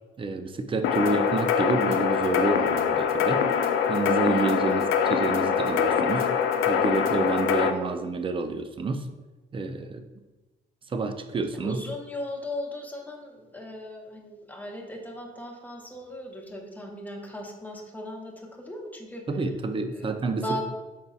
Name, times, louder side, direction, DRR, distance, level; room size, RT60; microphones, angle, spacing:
voice 1, 0.2-3.4 3.9-6.3 6.7-9.1 9.5-10.0 10.9-11.8 19.3-20.4, right 3 dB, 25° right, 8 dB, 0.4 m, -28 dB
sound 1, 0.8-7.7, left 7 dB, 85° left, 0.4 m, -24 dB
voice 2, 4.6-5.0 11.6-19.2 19.9-20.1 20.4-20.6, left 1 dB, 10° left, 0 dB, 0.8 m, -37 dB
5.3 x 3.9 x 2.3 m, 1.1 s
cardioid pair, 90°, 20 cm